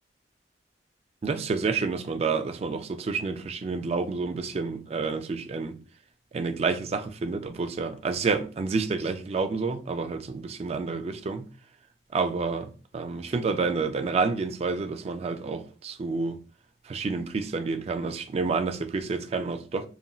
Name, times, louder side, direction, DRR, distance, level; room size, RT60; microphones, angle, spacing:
voice 1, 1.2-5.8 6.3-11.5 12.1-16.4 16.9-19.9, right 4 dB, 35° right, 0.3 m, -29 dB
2.8 x 2.5 x 2.3 m
head